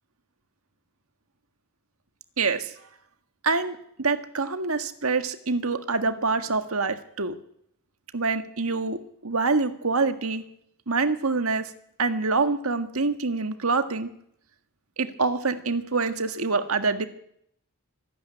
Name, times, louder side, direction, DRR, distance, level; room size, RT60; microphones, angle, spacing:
voice 1, 2.4-2.7 3.4-7.4 8.1-10.5 10.9-11.7 12.0-14.1 15.0-17.1, right 4 dB, 75° right, 8 dB, 1.7 m, -26 dB
24.5 x 12.0 x 9.8 m, 0.71 s
head